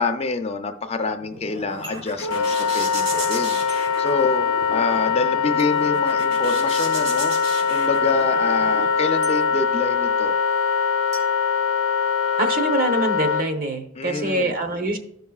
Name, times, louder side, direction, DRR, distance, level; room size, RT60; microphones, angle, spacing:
voice 1, 0.0-7.4 7.7-10.4 14.0-14.5, left 3 dB, 30° left, 7 dB, 0.4 m, -26 dB
sound 1, 1.0-8.9, right 1 dB, 65° right, 2.2 m, -35 dB
sound 2, 1.8-2.2 3.7-3.8 5.6-5.9 7.5-7.6 9.2-9.4 11.1-12.2, equal, 85° right, 2.3 m, -40 dB
Wind instrument woodwind instrument, 2.2-13.4, left 6 dB, 85° left, 0.6 m, -22 dB
voice 2, 12.4-15.0, right 2 dB, 45° right, 4 dB, 0.9 m, -24 dB
14.5 x 5.4 x 2.3 m, 0.71 s
head